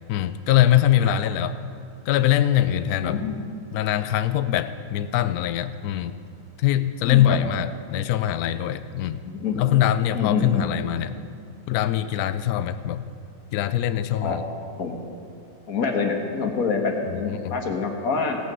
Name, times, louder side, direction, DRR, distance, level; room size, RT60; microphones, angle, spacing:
voice 1, 0.1-1.6 2.1-3.2 3.7-6.1 6.6-9.2 9.5-11.2 11.7-13.0 13.5-14.4 17.1-17.5, left 11 dB, 75° left, 12 dB, 0.9 m, -22 dB
voice 2, 1.0-1.3 2.9-3.4 7.0-7.4 9.2-9.6 10.1-10.8 14.2-14.4 14.8-15.0 15.7-18.4, left 5 dB, 50° left, 3 dB, 1.6 m, -26 dB
17.0 x 6.4 x 6.9 m, 2.5 s
omnidirectional pair, 2.0 m